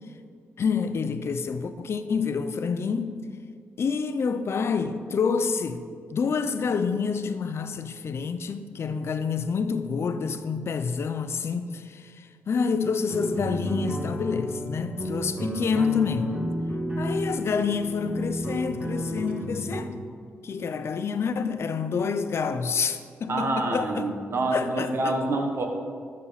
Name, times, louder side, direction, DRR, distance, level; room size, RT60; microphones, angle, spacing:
voice 1, 0.6-3.3 3.8-5.8 6.1-16.4 17.0-19.9 20.4-24.1 24.5-25.1, left 5 dB, 60° left, 0.7 m, -28 dB
sound 1, 13.1-19.8, equal, 35° right, 2.8 m, -32 dB
voice 2, 23.3-25.6, right 2 dB, 55° right, 1.5 m, -27 dB
13.5 x 6.4 x 4.2 m
cardioid pair, 70°, 5 cm